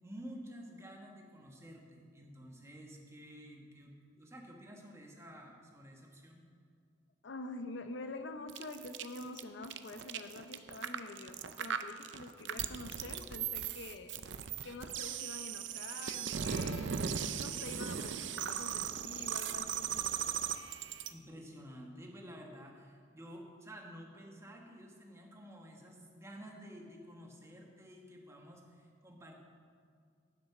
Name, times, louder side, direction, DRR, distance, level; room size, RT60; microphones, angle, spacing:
voice 1, 0.0-6.5 21.1-29.4, equal, 15° right, 0 dB, 1.3 m, -51 dB
voice 2, 7.2-14.1 14.6-17.0 17.3-19.9, left 2 dB, 90° left, 8 dB, 0.7 m, -46 dB
sound 1, 8.5-21.1, right 8 dB, 85° right, 0.5 m, -38 dB
10.0 x 7.3 x 5.9 m, 2.2 s
head